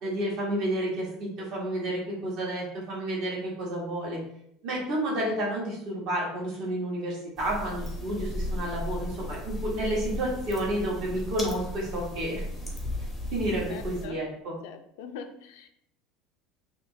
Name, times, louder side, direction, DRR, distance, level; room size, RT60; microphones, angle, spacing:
voice 1, 0.0-4.2 4.6-12.4 13.3-14.5, right 1 dB, 50° right, -3 dB, 1.3 m, -30 dB
sound 1, 7.4-14.1, left 1 dB, 5° left, 0.6 m, -35 dB
voice 2, 13.7-14.2 14.6-15.7, left 6 dB, 80° left, 7 dB, 0.4 m, -42 dB
3.5 x 2.8 x 2.6 m, 0.73 s
cardioid pair, 175°, 0 cm